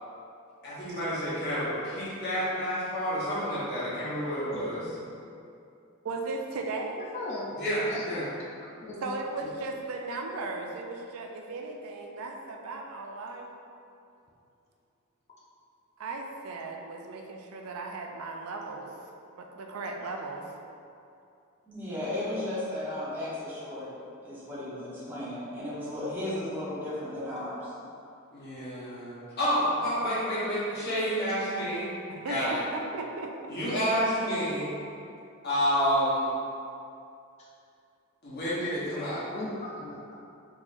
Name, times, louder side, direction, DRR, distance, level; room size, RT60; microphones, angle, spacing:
voice 1, 0.6-4.8 7.6-8.2 28.3-31.9 32.3-32.6 33.5-34.7 35.4-36.2 38.2-39.3, equal, 50° left, -10 dB, 1.2 m, -29 dB
voice 2, 4.5-4.9 7.0-7.5 7.9-8.3 8.8-9.1 9.4-9.5 39.3-40.1, left 2 dB, 30° left, -5 dB, 0.4 m, -39 dB
voice 3, 6.0-7.0 9.0-13.5 16.0-18.9 19.3-20.5 30.0-30.2 32.1-33.5, right 3 dB, 80° right, 2 dB, 0.4 m, -37 dB
voice 4, 21.6-23.9 24.2-27.7, left 1 dB, 10° right, -11 dB, 1.0 m, -35 dB
3.8 x 2.9 x 2.6 m, 2.6 s
head